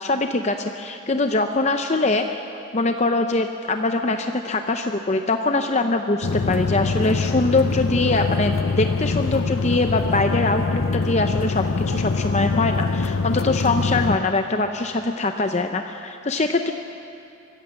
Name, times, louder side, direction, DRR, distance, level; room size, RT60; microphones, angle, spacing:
voice 1, 0.0-2.3 2.7-16.7, left 2 dB, 30° left, 6 dB, 0.6 m, -23 dB
sound 1, 6.2-14.2, left 4 dB, 75° left, 0.6 m, -24 dB
24.5 x 15.0 x 7.1 m, 2.7 s
head